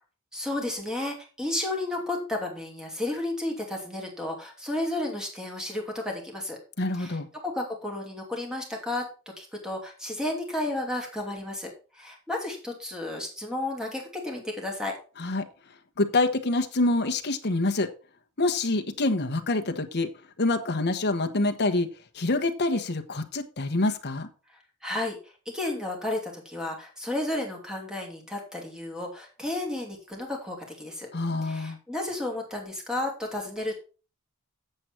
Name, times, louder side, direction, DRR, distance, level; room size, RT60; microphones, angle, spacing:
voice 1, 0.3-6.6 7.0-9.0 9.4-11.7 11.9-14.9 24.8-25.2 25.5-31.1 31.4-33.8, left 1 dB, 5° right, 1 dB, 2.7 m, -32 dB
voice 2, 6.8-7.3 15.2-15.5 16.0-17.9 18.4-20.1 20.4-21.9 22.1-24.3 31.1-31.8, left 2 dB, 50° left, 6 dB, 1.2 m, -26 dB
7.8 x 7.8 x 4.4 m, 0.34 s
head